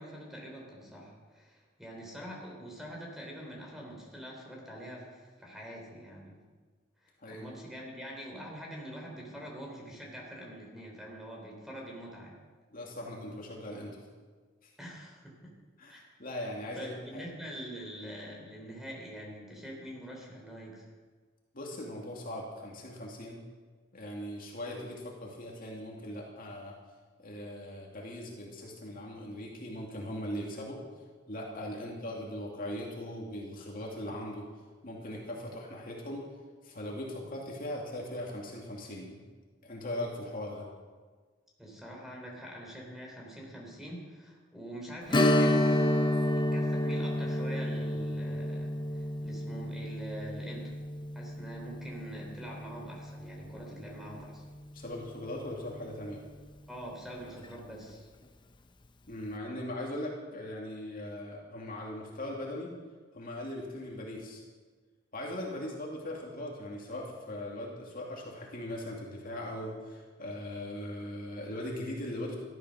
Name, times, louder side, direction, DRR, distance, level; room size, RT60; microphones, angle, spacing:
voice 1, 0.0-6.3 7.0-12.4 14.8-15.5 15.9-16.0 16.7-20.9 31.7-31.9 41.6-45.9 46.3-50.7 51.1-54.4 56.7-58.1, equal, ahead, -1 dB, 3.6 m, -44 dB
voice 2, 7.2-7.6 12.7-14.0 14.6-14.7 15.8-17.2 21.5-23.4 23.9-26.7 27.2-30.8 31.3-34.5 34.8-36.3 36.6-39.2 39.6-40.7 54.7-56.2 59.1-62.7 63.1-64.4 65.1-72.4, left 1 dB, 45° left, -2 dB, 2.5 m, -39 dB
Strum, 45.1-54.3 54.6-54.7 57.3-57.4 57.9-58.0, left 1 dB, 25° left, 0.7 m, -30 dB
14.5 x 12.5 x 6.4 m, 1.4 s
head